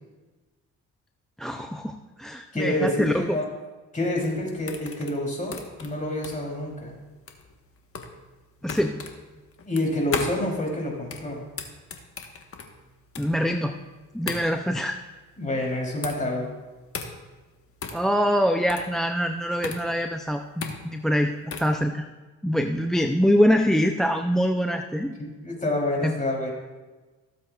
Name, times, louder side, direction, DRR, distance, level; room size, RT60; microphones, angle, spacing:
voice 1, 1.4-3.4 8.6-9.0 13.2-13.7 14.1-15.0 17.9-21.3 21.6-22.0 22.4-25.1 26.0-26.1, equal, ahead, 6 dB, 0.4 m, -24 dB
voice 2, 2.5-3.4 3.9-6.9 9.6-11.4 15.4-16.5 25.2-26.5, left 1 dB, 25° left, -1 dB, 3.2 m, -28 dB
sound 1, 4.0-21.8, left 5 dB, 50° left, 1.2 m, -37 dB
16.5 x 7.6 x 2.4 m, 1.3 s
cardioid pair, 90°, 30 cm